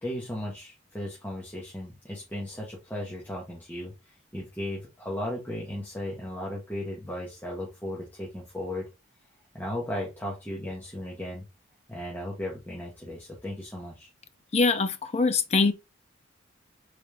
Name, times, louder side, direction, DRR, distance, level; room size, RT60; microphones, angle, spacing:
voice 1, 0.0-8.9 9.5-11.5 11.9-14.1, left 1 dB, 10° left, 0.9 m, -36 dB
voice 2, 14.5-15.7, left 4 dB, 30° left, 0.4 m, -23 dB
3.9 x 3.3 x 3.5 m
head